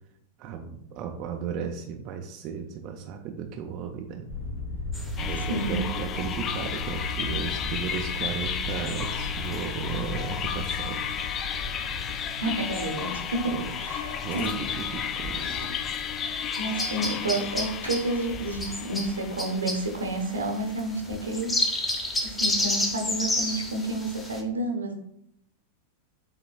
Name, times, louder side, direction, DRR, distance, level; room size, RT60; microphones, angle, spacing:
voice 1, 0.4-4.3 5.2-11.1 13.5-13.7 14.2-15.6, right 7 dB, 40° right, 3 dB, 0.4 m, -35 dB
sound 1, 4.3-18.3, left 2 dB, 80° left, 1.4 m, -37 dB
sound 2, 4.9-24.4, left 1 dB, 15° left, 0.8 m, -34 dB
sound 3, 5.2-20.4, left 8 dB, 30° left, 0.3 m, -33 dB
voice 2, 5.4-5.8 12.4-13.4 13.7-14.6 16.6-21.9 22.2-24.9, right 2 dB, 75° right, 3 dB, 0.8 m, -30 dB
7.1 x 3.0 x 2.3 m, 0.74 s
figure-of-eight pair, 90°, 0 cm